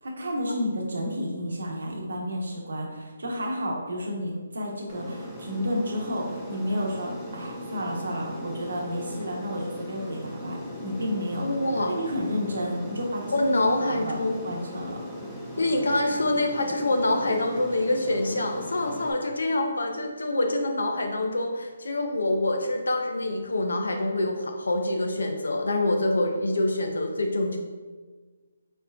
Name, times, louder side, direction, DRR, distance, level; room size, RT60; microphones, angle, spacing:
voice 1, 0.0-11.5 11.9-13.4 13.9-15.0, equal, 70° right, -1 dB, 0.9 m, -31 dB
Aircraft, 4.9-19.1, equal, ahead, 0.5 m, -39 dB
voice 2, 11.4-11.9 13.3-14.4 15.6-27.6, left 2 dB, 80° left, 3 dB, 0.6 m, -26 dB
4.3 x 3.3 x 2.4 m, 1.4 s
figure-of-eight pair, 150°, 0 cm